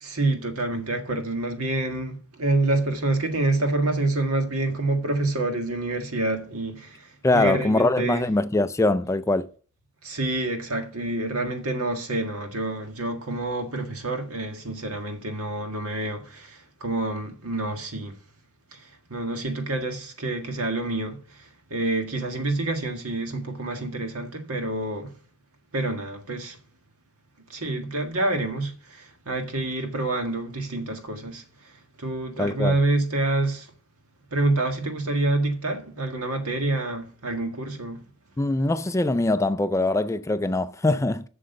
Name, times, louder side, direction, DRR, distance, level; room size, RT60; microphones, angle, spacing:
voice 1, 0.0-8.2 10.0-18.1 18.7-25.1 25.7-26.6 27.5-33.7 34.3-38.0, right 2 dB, 75° right, 1.7 m, -27 dB
voice 2, 7.2-9.5 32.4-32.8 38.4-41.3, left 2 dB, 15° left, 0.3 m, -23 dB
7.7 x 6.4 x 6.9 m
head